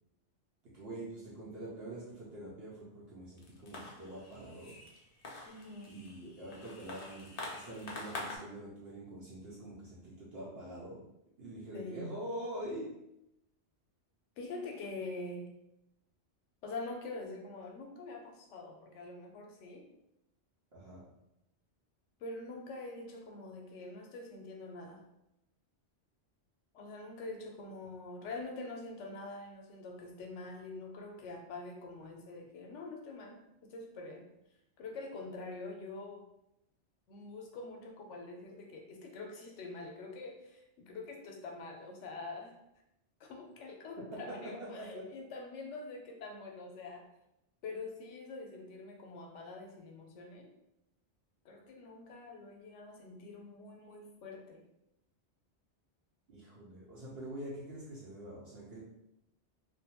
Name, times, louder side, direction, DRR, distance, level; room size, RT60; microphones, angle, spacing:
voice 1, 0.6-4.7 5.9-11.0 11.4-12.9 20.7-21.1 27.9-28.0 44.1-45.0 56.3-58.8, right 1 dB, 65° right, -7 dB, 0.8 m, -45 dB
sound 1, 3.4-8.4, left 2 dB, 50° left, 0.5 m, -46 dB
voice 2, 5.5-6.0 11.7-12.0 14.4-15.5 16.6-19.9 22.2-25.0 26.7-34.2 34.8-36.2 37.1-42.5 43.2-47.0 47.6-50.5 51.4-54.6, left 3 dB, 85° left, 2 dB, 0.9 m, -45 dB
2.5 x 2.2 x 2.8 m, 0.85 s
omnidirectional pair, 1.2 m